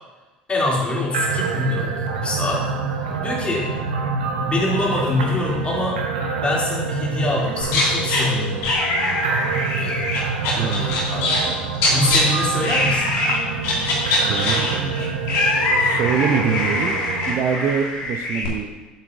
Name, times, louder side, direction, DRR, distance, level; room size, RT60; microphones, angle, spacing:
voice 1, 0.5-2.7 3.2-3.7 4.4-6.0 6.4-8.6 9.8-10.0 10.6-11.5 11.9-13.1, left 2 dB, 25° left, -4 dB, 2.8 m, -24 dB
sound 1, 1.1-17.3, right 5 dB, 75° right, 0.9 m, -26 dB
sound 2, 7.6-8.2 8.6-11.5 11.7-12.2 12.6-13.4 13.6-18.5, left 2 dB, 60° left, 2.3 m, -22 dB
voice 2, 10.6-11.1 14.2-15.2 15.8-17.0 17.3-18.7, right 7 dB, 50° right, 6 dB, 0.6 m, -25 dB
8.3 x 8.3 x 2.6 m, 1.2 s
hypercardioid pair, 65°, 5 cm